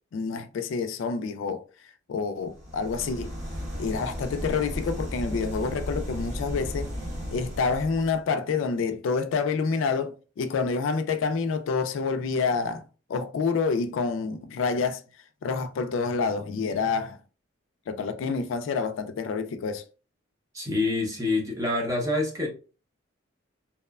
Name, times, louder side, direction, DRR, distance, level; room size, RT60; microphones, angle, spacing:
voice 1, 0.1-1.6 2.1-3.3 3.8-6.9 7.3-12.8 13.1-15.0 15.4-17.2 17.9-19.8, left 5 dB, 75° left, 0.3 m, -28 dB
sound 1, 2.5-8.2, equal, 40° right, 1.1 m, -35 dB
voice 2, 20.5-22.5, left 2 dB, 15° right, 0.7 m, -26 dB
2.9 x 2.1 x 2.2 m
head